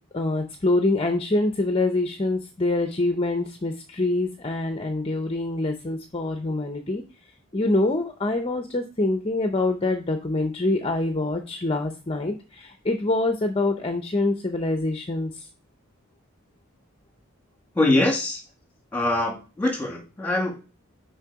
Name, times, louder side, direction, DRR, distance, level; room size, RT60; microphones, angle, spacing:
voice 1, 0.1-7.0 7.5-15.3, left 2 dB, 25° left, 6 dB, 0.6 m, -25 dB
voice 2, 17.7-18.4 18.9-20.5, left 2 dB, 10° left, 0 dB, 2.0 m, -23 dB
6.4 x 4.6 x 4.7 m, 0.33 s
head